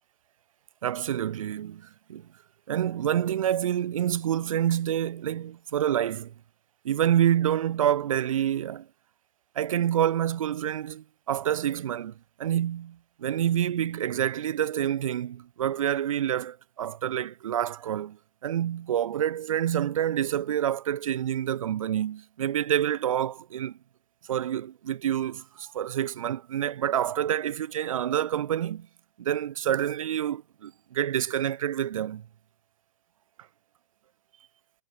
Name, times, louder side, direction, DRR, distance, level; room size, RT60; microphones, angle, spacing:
voice 1, 0.8-2.3 2.7-6.3 6.8-8.9 9.5-23.8 24.3-28.9 29.2-32.2, right 10 dB, 65° right, 1.6 m, -27 dB
hypercardioid pair, 135°, 19 cm